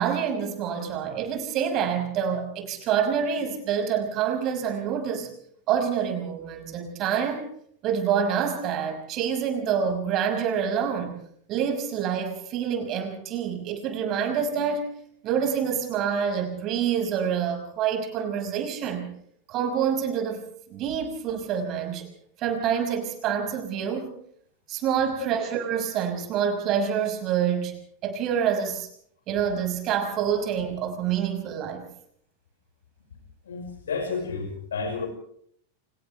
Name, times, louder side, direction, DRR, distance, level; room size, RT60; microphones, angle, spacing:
voice 1, 0.0-5.3 5.7-7.5 7.8-11.2 11.5-14.9 15.2-19.1 19.5-20.4 20.7-22.1 22.4-24.1 24.7-28.9 29.3-31.9, right 8 dB, 35° right, 5 dB, 5.8 m, -27 dB
voice 2, 33.4-35.1, left 4 dB, 65° left, 3 dB, 5.6 m, -31 dB
29.5 x 27.0 x 3.4 m, 0.64 s
figure-of-eight pair, 90°, 0 cm